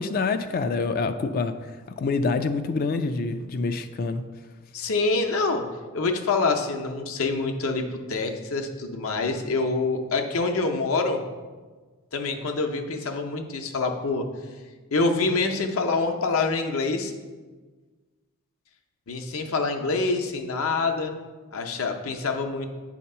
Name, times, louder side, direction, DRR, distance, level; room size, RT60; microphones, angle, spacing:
voice 1, 0.0-1.5 2.0-4.2, left 4 dB, 40° left, 9 dB, 0.3 m, -26 dB
voice 2, 4.7-5.6 5.9-11.2 12.1-14.3 14.9-17.1 19.1-21.1 21.5-22.7, left 3 dB, 70° left, 5 dB, 0.7 m, -26 dB
8.5 x 2.8 x 5.4 m, 1.4 s
head